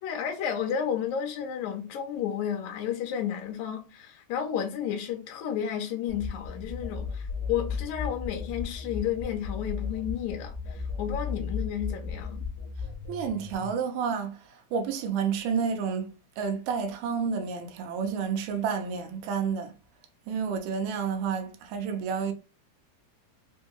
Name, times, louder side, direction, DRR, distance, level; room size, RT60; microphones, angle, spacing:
voice 1, 0.0-12.4, left 9 dB, 75° left, 1.8 m, -32 dB
sound 1, 6.1-13.7, left 5 dB, 60° left, 0.8 m, -35 dB
voice 2, 13.1-19.7 20.3-22.3, right 6 dB, 80° right, 2.3 m, -30 dB
5.3 x 2.2 x 2.9 m
omnidirectional pair, 3.8 m